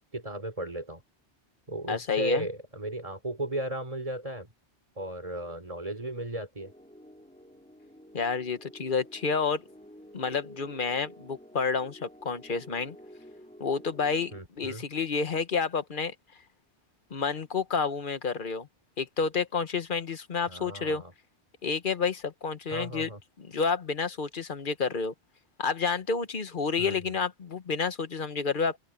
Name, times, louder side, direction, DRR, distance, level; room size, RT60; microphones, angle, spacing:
voice 1, 0.1-1.0 1.7-4.5 5.0-6.7 14.3-14.8 20.5-21.1 22.7-23.2 26.8-27.1, right 1 dB, 30° right, 3.9 m, -35 dB
voice 2, 1.9-2.5 8.1-9.6 10.1-12.9 13.6-14.3 14.6-16.1 17.1-18.7 19.0-21.0 21.6-23.1 23.4-25.1 25.6-28.8, left 5 dB, 50° left, 1.2 m, -29 dB
sound 1, 6.6-14.4, equal, 5° left, 5.1 m, -51 dB
open air
omnidirectional pair, 1.2 m